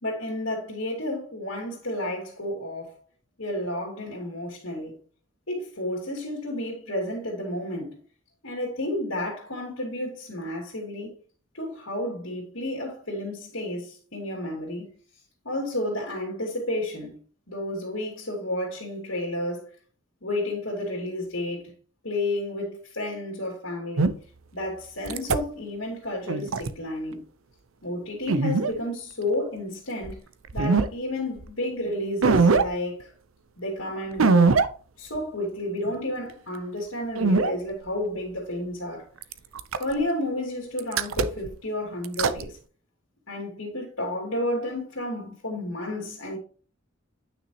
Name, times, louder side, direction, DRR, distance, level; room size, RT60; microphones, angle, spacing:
voice 1, 0.0-3.0 3.4-5.0 5.5-8.0 8.4-11.1 11.5-14.9 15.4-17.2 17.5-19.7 20.2-21.7 22.0-24.2 24.5-27.3 27.8-30.2 30.5-33.1 33.6-34.6 35.0-39.1 39.8-42.6 43.3-46.4, left 1 dB, 70° left, 2.8 m, -31 dB
sound 1, 24.0-24.1 25.1-25.4 26.3-26.7 28.3-28.7 30.0-30.1 30.5-30.9 31.4-31.5 32.2-32.7 34.2-34.7 35.1-35.2 37.1-37.5 39.2-39.9 40.8-41.5 42.0-42.4, right 4 dB, 75° right, 0.6 m, -21 dB
9.6 x 6.0 x 3.0 m
head